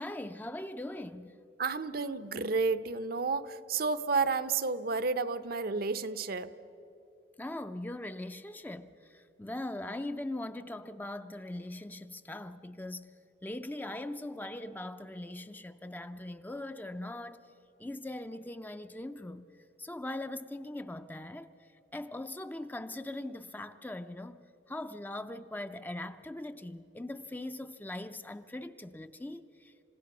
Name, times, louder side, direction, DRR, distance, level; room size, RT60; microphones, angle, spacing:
voice 1, 0.0-1.4 7.4-13.1 13.4-17.5 17.8-19.5 19.8-29.7, left 1 dB, 10° left, 0.4 m, -41 dB
voice 2, 1.6-6.5, right 4 dB, 55° right, 0.7 m, -31 dB
28.5 x 16.5 x 6.0 m
head